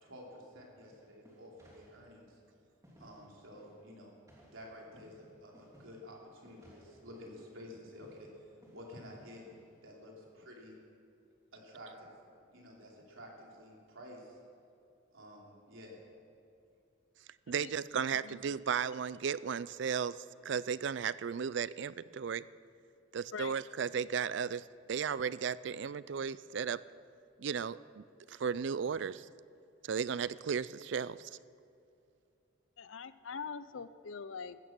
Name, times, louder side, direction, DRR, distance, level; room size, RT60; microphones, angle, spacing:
voice 1, 0.0-2.4 3.0-4.1 4.5-8.3 8.7-9.4 9.8-10.8 11.5-12.1 12.5-14.4 15.1-15.9, equal, 85° right, -2 dB, 3.5 m, -51 dB
sound 1, 0.8-10.4, equal, 15° right, 3.0 m, -63 dB
voice 2, 17.5-22.5 23.1-26.8 27.4-29.3 29.8-31.3, right 6 dB, 60° right, 18 dB, 0.4 m, -35 dB
voice 3, 32.8-34.6, left 5 dB, 75° left, 14 dB, 0.6 m, -43 dB
15.0 x 13.5 x 6.1 m, 2.6 s
head